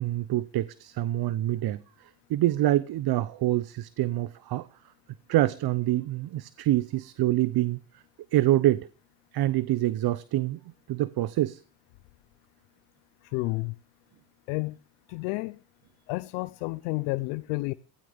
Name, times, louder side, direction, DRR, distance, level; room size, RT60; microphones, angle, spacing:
voice 1, 0.0-4.7 5.3-8.0 8.3-8.9 9.3-10.6 10.9-11.6, right 14 dB, 50° right, 0.8 m, -26 dB
voice 2, 13.2-13.7 14.5-14.8 15.1-15.6 16.1-17.7, left 23 dB, 90° left, 0.8 m, -30 dB
22.5 x 16.5 x 3.5 m
supercardioid pair, 105°, 50 cm